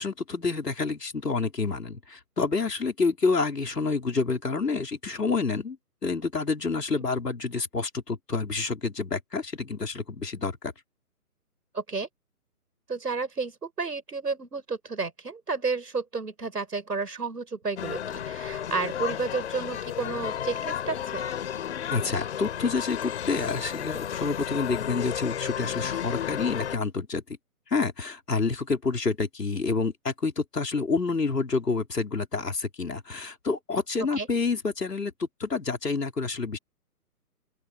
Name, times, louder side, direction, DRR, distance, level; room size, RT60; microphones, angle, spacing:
voice 1, 0.0-5.8 6.0-10.7 21.9-27.2 27.7-36.6, left 4 dB, 85° left, 5.3 m, -28 dB
voice 2, 11.7-12.1 12.9-21.3 34.1-34.3, right 4 dB, 85° right, 6.1 m, -31 dB
sound 1, 17.8-26.8, left 9 dB, 45° left, 4.5 m, -33 dB
open air
figure-of-eight pair, 150°, 47 cm